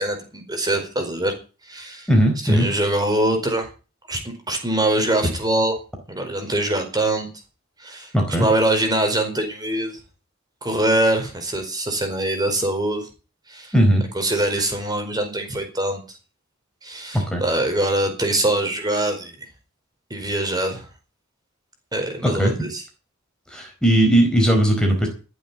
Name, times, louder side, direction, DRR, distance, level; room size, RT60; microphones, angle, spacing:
voice 1, 0.0-1.3 1.7-2.1 2.4-3.7 4.1-5.8 6.1-7.3 7.8-10.0 10.6-13.1 13.5-13.7 14.1-16.0 16.8-19.4 20.1-20.9 21.9-22.8, right 1 dB, 20° right, 5 dB, 4.7 m, -23 dB
voice 2, 2.1-2.7 8.1-8.5 13.7-14.0 17.1-17.4 22.2-22.5 23.5-25.1, right 1 dB, 5° left, 1 dB, 4.4 m, -18 dB
14.5 x 8.1 x 8.6 m, 0.34 s
head